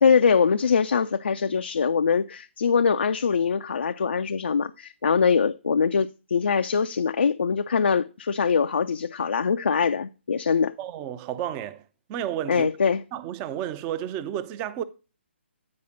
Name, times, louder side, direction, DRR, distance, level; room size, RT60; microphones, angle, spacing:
voice 1, 0.0-10.7 12.5-13.0, left 6 dB, 60° left, 0.4 m, -23 dB
voice 2, 10.8-12.7 13.1-14.8, right 11 dB, 20° right, 0.5 m, -32 dB
9.6 x 4.9 x 3.8 m
figure-of-eight pair, 135°, 7 cm